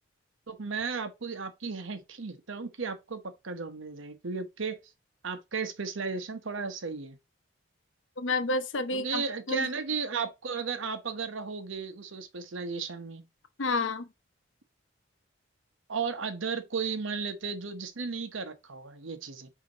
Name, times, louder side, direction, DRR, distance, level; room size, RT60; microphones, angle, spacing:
voice 1, 0.5-4.8 5.2-7.2 8.9-13.3 15.9-19.5, right 5 dB, 80° right, 0.9 m, -35 dB
voice 2, 8.2-9.7 13.6-14.1, left 2 dB, 75° left, 0.7 m, -30 dB
8.2 x 2.9 x 3.9 m
head